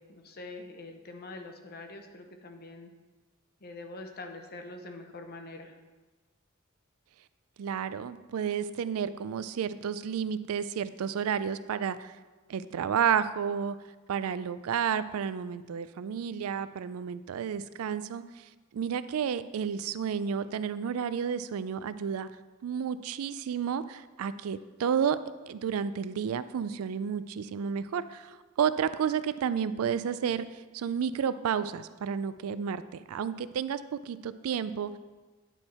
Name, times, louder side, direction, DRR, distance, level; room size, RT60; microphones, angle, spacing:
voice 1, 0.0-2.9 3.6-5.8, left 2 dB, 45° left, 5 dB, 0.7 m, -44 dB
voice 2, 7.6-12.2 12.5-13.8 14.1-18.4 18.7-22.3 22.6-25.2 25.5-35.0, right 7 dB, 75° right, 14 dB, 0.3 m, -31 dB
9.7 x 4.4 x 4.3 m, 1.3 s
head